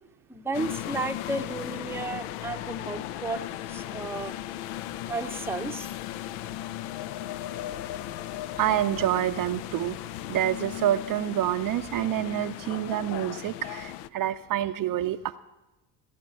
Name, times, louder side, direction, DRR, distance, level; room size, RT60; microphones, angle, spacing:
voice 1, 0.3-4.3 5.1-5.9, right 3 dB, 5° right, 6 dB, 0.7 m, -33 dB
sound 1, 0.5-14.1, left 13 dB, 70° left, 0.6 m, -37 dB
voice 2, 8.6-10.0 10.3-15.4, right 12 dB, 45° right, 9 dB, 0.6 m, -27 dB
16.0 x 8.3 x 7.4 m, 1.0 s
hypercardioid pair, 65°, 47 cm